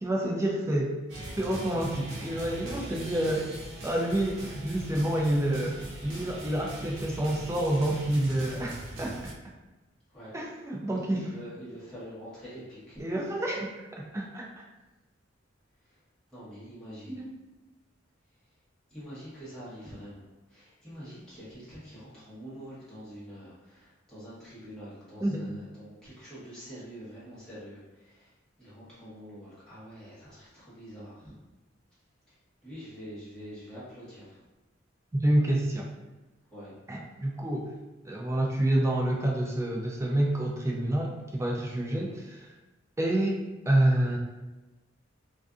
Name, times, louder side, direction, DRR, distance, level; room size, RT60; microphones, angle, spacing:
voice 1, 0.0-1.0 1.4-5.8 6.0-9.3 10.3-11.3 13.0-14.6 17.1-17.3 25.2-25.4 35.1-35.9 36.9-37.7 38.0-42.5 43.0-43.4 43.6-44.2, right 1 dB, 15° right, -1 dB, 0.3 m, -28 dB
sound 1, 1.1-9.3, right 1 dB, 75° right, 0.6 m, -40 dB
voice 2, 10.9-13.0 15.8-16.0 16.3-17.2 18.9-28.3 28.6-31.3 32.3-32.4 32.6-34.4 36.5-36.7 41.9-42.2, equal, 5° left, -12 dB, 1.1 m, -45 dB
2.5 x 2.4 x 2.3 m, 1.1 s
head